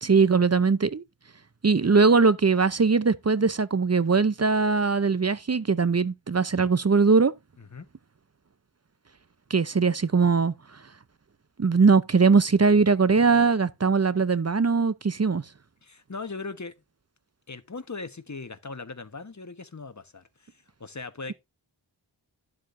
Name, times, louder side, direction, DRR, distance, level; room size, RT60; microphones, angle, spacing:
voice 1, 0.0-1.0 1.6-7.3 9.5-10.5 11.6-15.4, right 4 dB, 35° right, 0.6 m, -21 dB
voice 2, 15.8-16.7 17.5-20.5 20.8-21.3, left 4 dB, 40° left, 1.2 m, -39 dB
11.5 x 7.5 x 2.6 m
wide cardioid pair, 50°, 44 cm